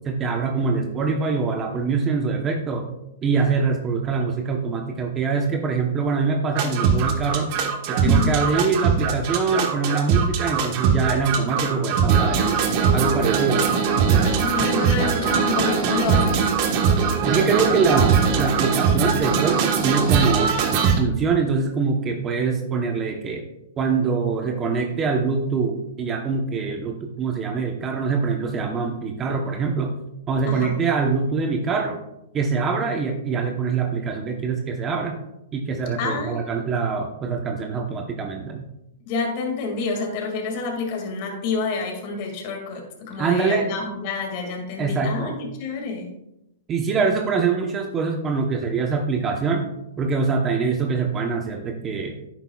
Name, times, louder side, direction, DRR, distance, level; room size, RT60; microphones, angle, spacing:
voice 1, 0.0-2.9 3.2-7.5 7.9-12.6 12.9-13.6 17.2-20.6 21.0-23.4 23.8-29.9 30.3-32.0 32.3-35.2 35.5-38.7 43.2-43.7 44.8-45.3 46.7-49.6 50.0-52.2, right 4 dB, 20° right, 2 dB, 0.9 m, -24 dB
sound 1, 6.5-21.0, right 6 dB, 45° right, 1.3 m, -21 dB
voice 2, 8.0-8.4 14.2-16.5 30.5-30.8 36.0-36.6 39.1-46.1, left 4 dB, 45° left, 2 dB, 2.1 m, -28 dB
10.0 x 8.4 x 2.3 m, 0.86 s
hypercardioid pair, 140°, 0 cm